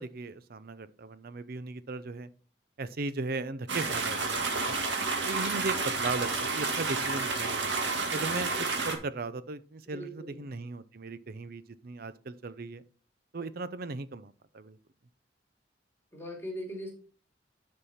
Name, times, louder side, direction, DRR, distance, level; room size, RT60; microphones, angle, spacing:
voice 1, 0.0-2.3 2.8-4.7 5.2-7.6 8.1-8.5 8.8-12.8 13.3-14.8, right 3 dB, 55° right, 0.6 m, -37 dB
sound 1, 3.7-8.9, right 3 dB, 85° right, 1.9 m, -30 dB
voice 2, 9.9-10.5 16.1-16.9, equal, 15° left, 2.8 m, -40 dB
10.0 x 5.4 x 4.3 m
head